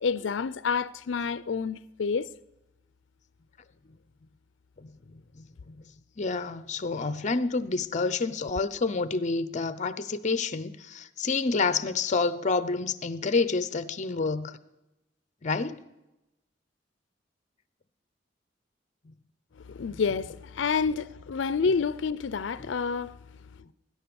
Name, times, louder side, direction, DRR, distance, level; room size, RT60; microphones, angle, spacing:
voice 1, 0.0-2.3 19.6-23.5, left 5 dB, 80° left, 0.4 m, -29 dB
voice 2, 4.8-5.8 6.2-14.6 15.4-15.8 19.1-19.2 19.9-20.0 22.6-22.7, left 4 dB, 40° left, 0.7 m, -29 dB
19.0 x 10.0 x 7.0 m
head